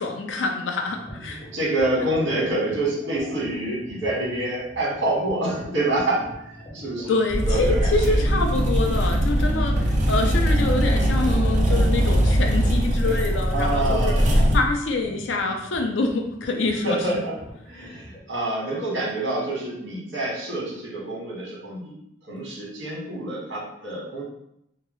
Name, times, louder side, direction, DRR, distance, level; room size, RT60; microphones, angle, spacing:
voice 1, 0.0-1.4 2.0-2.1 7.1-14.2 14.5-17.0, left 3 dB, 85° left, 3 dB, 0.5 m, -26 dB
sound 1, 0.9-18.2, right 1 dB, 30° left, 0.5 m, -43 dB
voice 2, 1.2-7.1 7.4-8.4 13.5-14.3 16.8-17.3 17.7-22.0 22.3-24.2, right 1 dB, 80° right, -5 dB, 1.2 m, -27 dB
sound 2, 7.3-14.6, equal, 40° right, 0.4 m, -21 dB
2.8 x 2.3 x 3.0 m, 0.78 s
head